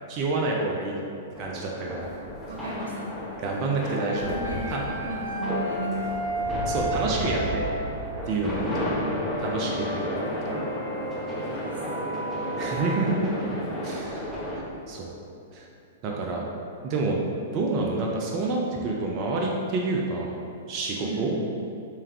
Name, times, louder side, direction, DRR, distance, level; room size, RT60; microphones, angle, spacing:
voice 1, 0.1-1.0 1.4-2.1 3.4-4.3 4.7-4.9 6.7-7.6 8.3-9.0 9.4-10.0 10.4-10.6 12.6-13.3 13.8-14.3 14.9-15.1 15.5-15.6 16.0-16.4 16.8-17.2 17.5-20.4 20.7-21.4, right 3 dB, 40° right, -1 dB, 0.5 m, -28 dB
sound 1, 1.4-14.6, equal, ahead, 1.0 m, -32 dB
voice 2, 2.5-3.2 4.2-6.0 8.2-8.5 11.3-11.8 20.9-21.3, right 3 dB, 75° right, -2 dB, 0.6 m, -36 dB
sound 2, 3.9-7.8 8.6-13.2, right 1 dB, 85° left, 0.6 m, -34 dB
3.3 x 3.2 x 3.3 m, 2.6 s
figure-of-eight pair, 105°, 0 cm